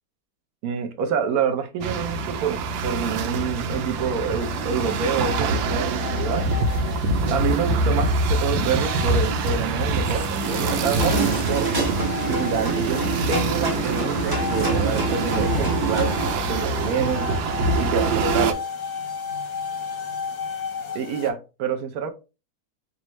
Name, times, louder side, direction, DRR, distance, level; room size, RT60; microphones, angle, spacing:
voice 1, 0.6-6.5 7.3-11.9 12.3-17.3 17.8-18.6 20.9-22.1, right 6 dB, 65° right, 1.0 m, -27 dB
sound 1, 1.8-18.5, right 3 dB, 85° right, 1.3 m, -25 dB
sound 2, 4.4-21.3, left 6 dB, 55° left, 0.8 m, -35 dB
sound 3, 10.4-16.3, right 3 dB, 15° right, 0.7 m, -27 dB
5.3 x 2.4 x 3.0 m
omnidirectional pair, 2.0 m